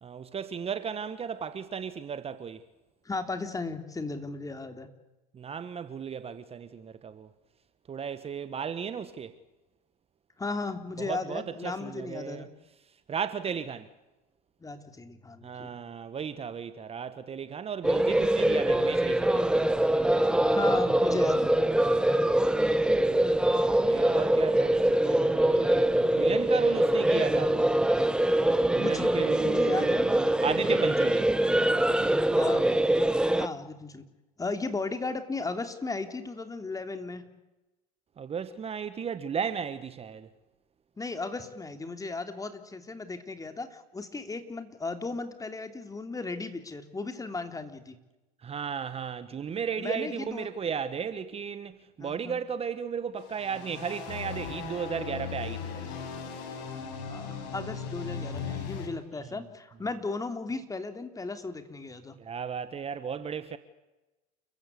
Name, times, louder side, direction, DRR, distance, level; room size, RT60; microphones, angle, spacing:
voice 1, 0.0-2.6 5.3-7.3 7.9-9.3 11.0-12.5 13.1-13.9 15.4-19.6 22.5-22.6 22.9-23.4 23.8-27.8 28.0-28.2 28.7-31.3 38.2-40.3 48.4-55.9 62.2-63.6, right 7 dB, 30° right, 1.4 m, -35 dB
voice 2, 3.0-4.9 10.4-12.5 14.6-15.7 20.5-21.5 28.8-29.1 29.4-30.1 32.3-32.6 33.3-34.0 34.4-37.2 41.0-48.0 49.8-50.5 52.0-52.4 57.0-62.1, left 3 dB, 15° left, 3.2 m, -35 dB
sound 1, 17.8-33.5, right 1 dB, 5° right, 1.0 m, -24 dB
sound 2, 53.2-58.9, left 6 dB, 65° left, 6.3 m, -37 dB
29.5 x 15.5 x 8.4 m
hypercardioid pair, 85°, 21 cm